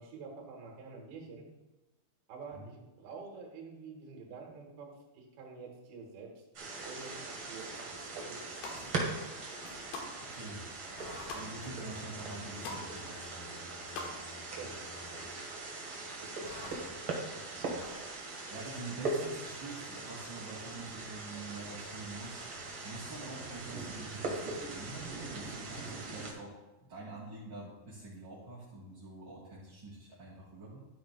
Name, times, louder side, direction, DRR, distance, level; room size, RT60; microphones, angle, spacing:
voice 1, 0.0-1.5 2.3-6.4 6.9-8.6 14.6-14.8 15.1-15.6 16.4-16.7, right 4 dB, 80° right, 0 dB, 3.2 m, -48 dB
sound 1, 6.5-26.3, right 3 dB, 55° right, 1.5 m, -41 dB
sound 2, 8.3-8.8 9.4-10.1 10.5-11.5 12.0-12.1 12.3-12.9 13.1-14.1 14.4-14.5, left 3 dB, 80° left, 3.0 m, -43 dB
sound 3, 8.7-9.1 9.6-9.9 11.0-15.3 16.4-16.8 17.8-18.2, left 2 dB, 40° left, 2.8 m, -51 dB
voice 2, 10.2-13.7 16.6-16.9 17.3-17.8 18.5-22.5 22.8-26.5 26.8-30.8, right 2 dB, 35° right, -9 dB, 2.2 m, -46 dB
12.0 x 9.3 x 2.2 m, 1.0 s
omnidirectional pair, 4.4 m